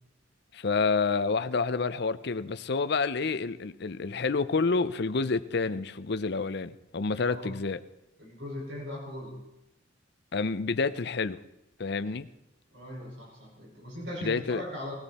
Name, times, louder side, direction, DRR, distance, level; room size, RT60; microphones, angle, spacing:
voice 1, 0.5-7.8 10.3-11.4 11.8-12.3 14.2-14.6, left 4 dB, 60° left, 13 dB, 0.6 m, -28 dB
voice 2, 7.1-7.5 8.2-9.4 12.7-14.9, left 1 dB, 65° right, -2 dB, 5.6 m, -39 dB
19.5 x 16.5 x 4.2 m, 0.90 s
head